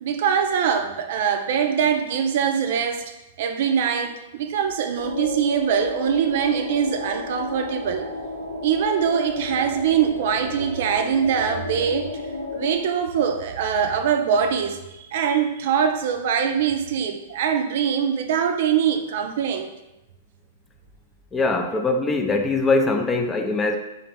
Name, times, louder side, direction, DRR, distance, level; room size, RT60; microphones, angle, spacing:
voice 1, 0.0-3.0 3.4-8.1 8.6-12.1 12.5-19.7, right 7 dB, 55° right, 6 dB, 0.4 m, -23 dB
sound 1, 5.0-12.8, left 2 dB, 90° left, 1.1 m, -32 dB
voice 2, 21.3-23.8, left 3 dB, 15° left, 4 dB, 0.4 m, -22 dB
3.9 x 2.5 x 3.5 m, 0.92 s
figure-of-eight pair, 105°, 0 cm